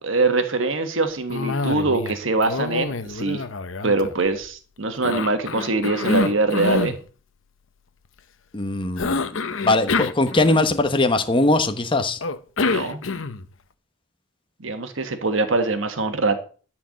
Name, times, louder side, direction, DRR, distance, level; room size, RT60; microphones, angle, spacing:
voice 1, 0.0-3.4 3.8-6.9 12.6-13.0 14.6-16.4, right 3 dB, 80° right, 1.4 m, -23 dB
Cough, 1.3-2.2 2.4-4.5 5.0-7.0 9.0-11.0 12.2-13.5, left 3 dB, 85° left, 0.9 m, -26 dB
voice 2, 8.5-12.2, left 2 dB, 25° left, 1.0 m, -21 dB
12.5 x 4.6 x 7.6 m
head